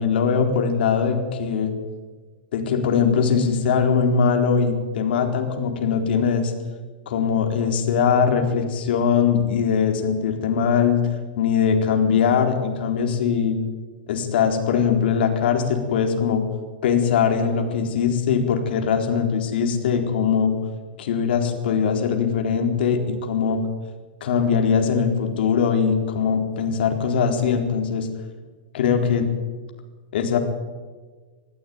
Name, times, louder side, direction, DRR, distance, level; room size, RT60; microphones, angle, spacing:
voice 1, 0.0-1.7 2.5-6.5 7.1-11.0 11.4-13.6 14.1-16.4 16.8-20.5 21.0-23.6 24.2-28.1 28.7-29.3 30.1-30.4, left 6 dB, 70° left, 4 dB, 4.2 m, -21 dB
21.0 x 15.0 x 9.6 m, 1.4 s
hypercardioid pair, 145°, 6 cm